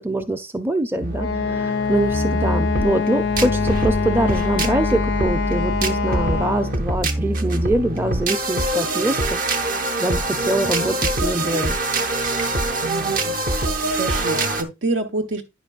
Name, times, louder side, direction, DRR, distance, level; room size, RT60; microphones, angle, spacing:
voice 1, 0.0-9.4 10.0-11.8, right 1 dB, 10° right, 0.5 m, -24 dB
sound 1, 1.0-14.6, right 2 dB, 50° right, 0.8 m, -24 dB
Wind instrument woodwind instrument, 1.1-6.8, left 5 dB, 70° left, 0.4 m, -24 dB
voice 2, 12.8-13.7 14.0-15.4, right 2 dB, 85° right, 1.3 m, -28 dB
9.7 x 6.0 x 2.4 m
head